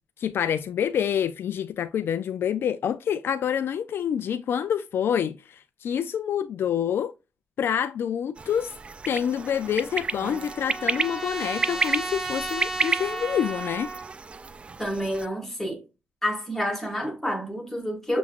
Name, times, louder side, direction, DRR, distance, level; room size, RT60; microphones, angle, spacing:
voice 1, 0.2-7.1 7.6-8.7 9.1-13.9, left 8 dB, 60° left, 0.3 m, -27 dB
sound 1, 8.4-15.3, right 4 dB, 25° right, 0.3 m, -32 dB
Trumpet, 9.4-14.1, right 2 dB, 10° right, 1.0 m, -34 dB
voice 2, 14.8-15.9 16.2-18.2, equal, 5° left, 1.9 m, -29 dB
7.0 x 3.0 x 2.4 m
cardioid pair, 130°, 4 cm